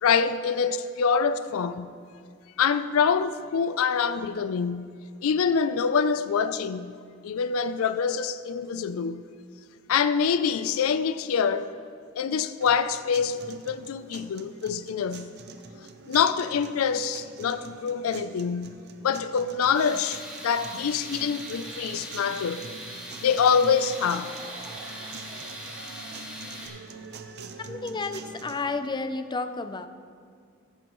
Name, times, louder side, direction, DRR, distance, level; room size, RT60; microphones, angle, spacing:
voice 1, 0.0-1.9 2.6-4.9 5.2-7.0 7.2-9.2 9.9-11.7 12.2-15.3 16.1-22.7 23.2-24.3, left 6 dB, 80° left, 0.4 m, -25 dB
sound 1, 12.6-28.6, right 4 dB, 50° right, 0.7 m, -45 dB
Tools, 19.7-26.7, right 1 dB, 5° right, 1.6 m, -40 dB
Laughter / Crowd, 23.3-26.1, right 2 dB, 25° right, 0.9 m, -49 dB
voice 2, 27.6-29.9, left 3 dB, 20° left, 0.5 m, -32 dB
14.5 x 11.5 x 3.0 m
head